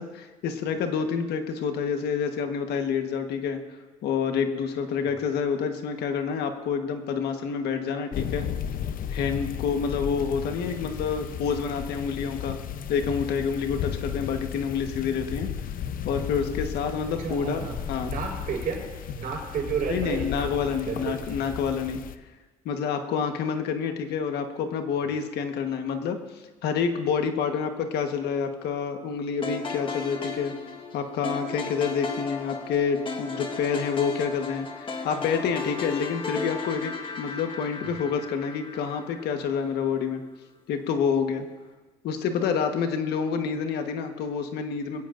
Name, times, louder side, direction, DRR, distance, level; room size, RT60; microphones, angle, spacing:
voice 1, 0.0-3.6 4.0-8.5 9.1-12.6 12.9-15.5 16.0-18.1 19.9-22.0 22.6-26.2 26.6-30.5 30.9-40.2 40.7-41.5 42.0-45.0, left 6 dB, 75° left, 6 dB, 1.3 m, -28 dB
sound 1, 8.1-22.1, left 8 dB, 55° left, 0.7 m, -34 dB
voice 2, 17.0-18.8 19.1-21.5, right 6 dB, 60° right, 0 dB, 4.7 m, -32 dB
sound 2, 29.4-39.7, left 4 dB, 30° left, 1.4 m, -35 dB
21.5 x 16.5 x 2.6 m, 1.3 s
cardioid pair, 110°, 17 cm